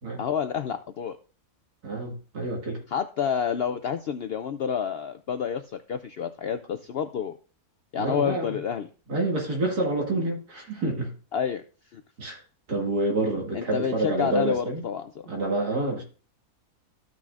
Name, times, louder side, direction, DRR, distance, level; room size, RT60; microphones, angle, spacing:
voice 1, 0.2-1.2 2.9-7.4 7.9-8.9 11.3-11.6 11.9-12.0 13.5-15.1, left 7 dB, 80° left, 9 dB, 0.5 m, -29 dB
voice 2, 1.8-2.8 8.0-8.6 9.1-11.1 12.2-12.4 12.7-14.8 15.3-16.0, right 2 dB, 85° right, 0 dB, 2.5 m, -28 dB
14.5 x 6.1 x 2.4 m, 0.37 s
omnidirectional pair, 1.6 m